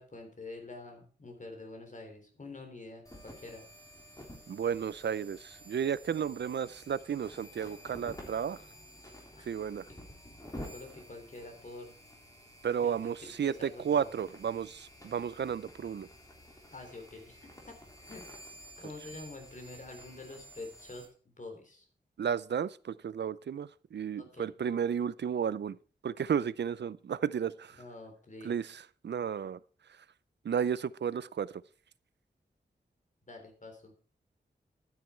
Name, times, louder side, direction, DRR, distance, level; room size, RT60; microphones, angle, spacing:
voice 1, 0.0-3.6 9.4-9.5 10.5-12.0 12.8-12.9 13.2-14.1 16.7-21.9 24.2-24.5 27.8-28.6 33.3-33.9, left 2 dB, 45° left, 3.6 m, -47 dB
sound 1, 3.1-21.1, equal, 20° left, 3.5 m, -51 dB
voice 2, 4.5-8.6 9.5-9.9 12.6-16.1 22.2-25.8 26.0-27.8 28.4-29.6 30.4-31.5, right 8 dB, 85° right, 0.5 m, -33 dB
12.0 x 9.4 x 4.4 m
wide cardioid pair, 120°, 18 cm